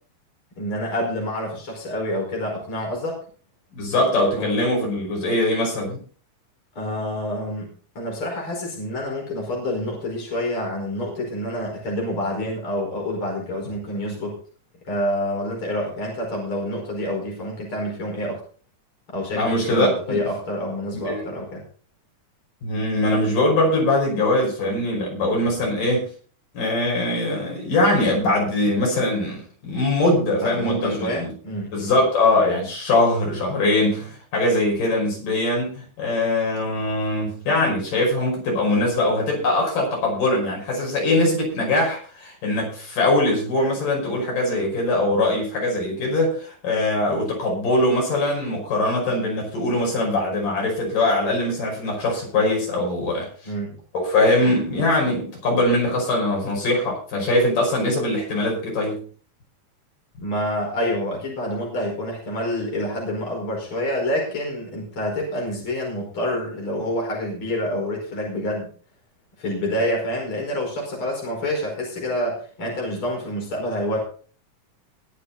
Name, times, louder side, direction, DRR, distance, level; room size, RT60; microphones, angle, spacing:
voice 1, 0.6-3.2 4.3-4.5 6.8-14.4 14.9-18.4 19.1-21.6 30.4-31.9 53.4-53.8 60.2-68.7 69.4-74.0, left 1 dB, 40° left, -1 dB, 5.7 m, -27 dB
voice 2, 3.7-6.0 19.3-20.2 21.1-21.2 22.6-26.1 26.5-31.3 31.7-53.3 53.9-59.0, left 1 dB, 85° left, -1 dB, 7.1 m, -22 dB
21.0 x 7.2 x 4.1 m, 0.42 s
omnidirectional pair, 3.7 m